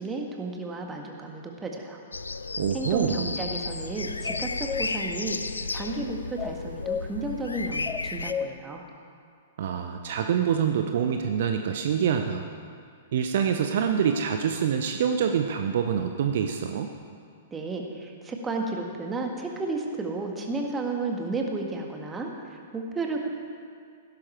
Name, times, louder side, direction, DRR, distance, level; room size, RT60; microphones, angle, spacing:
voice 1, 0.0-2.0 2.7-8.8 17.5-23.3, right 3 dB, 15° right, 2 dB, 1.7 m, -33 dB
sound 1, 2.1-8.3, left 3 dB, 75° left, 0.5 m, -33 dB
voice 2, 2.6-3.3 9.6-12.5 13.1-16.9, right 7 dB, 55° right, 5 dB, 0.7 m, -26 dB
sound 2, 4.3-4.9 6.4-7.0 7.9-8.5, left 7 dB, 20° left, 0.4 m, -32 dB
16.0 x 12.0 x 4.5 m, 2.2 s
figure-of-eight pair, 105°, 0 cm